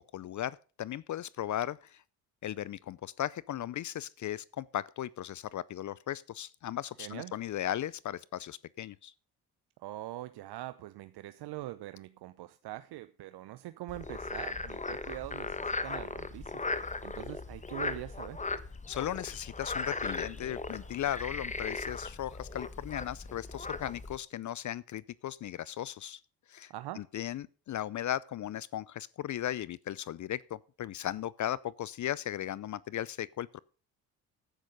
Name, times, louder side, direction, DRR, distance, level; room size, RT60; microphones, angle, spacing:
voice 1, 0.1-2.0 2.4-9.1 18.9-26.2 26.5-33.6, left 12 dB, 45° left, 0.5 m, -37 dB
voice 2, 7.0-7.3 9.8-18.4 26.7-27.1, right 15 dB, 65° right, 0.8 m, -43 dB
Frog, 13.9-24.2, left 3 dB, 15° left, 1.3 m, -38 dB
10.0 x 8.9 x 5.3 m
supercardioid pair, 60°, 42 cm